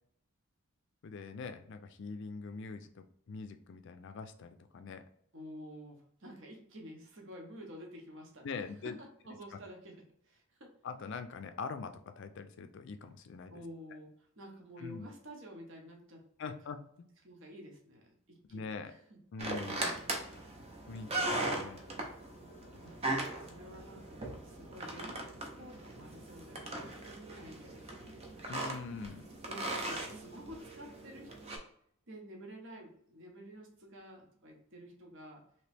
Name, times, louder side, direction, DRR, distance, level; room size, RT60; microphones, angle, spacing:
voice 1, 1.0-5.0 8.4-9.0 10.8-13.5 14.8-15.1 16.4-17.1 18.5-18.9 19.3-20.0 20.9-21.8 22.7-22.8 28.5-29.3, left 4 dB, 55° left, 8 dB, 0.4 m, -43 dB
voice 2, 5.3-8.5 8.8-10.0 10.2-10.7 13.5-16.5 17.2-19.0 22.8-23.0 23.4-28.2 29.5-31.3 32.1-35.4, equal, 60° right, 1 dB, 0.8 m, -50 dB
sound 1, 19.4-31.6, right 2 dB, 30° right, 0.6 m, -39 dB
3.0 x 2.9 x 3.2 m, 0.68 s
head